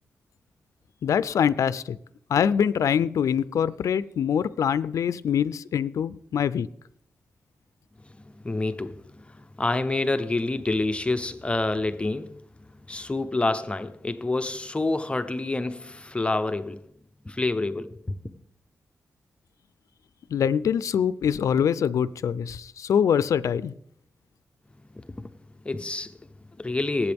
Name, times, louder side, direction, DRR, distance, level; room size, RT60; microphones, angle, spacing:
voice 1, 1.0-2.0 2.3-6.7 20.3-23.7, left 8 dB, 90° left, 0.4 m, -24 dB
voice 2, 8.0-16.9 17.2-18.2 24.9-25.3 25.6-27.1, left 2 dB, 20° left, 0.7 m, -28 dB
19.0 x 8.4 x 3.5 m
wide cardioid pair, 90°, 5 cm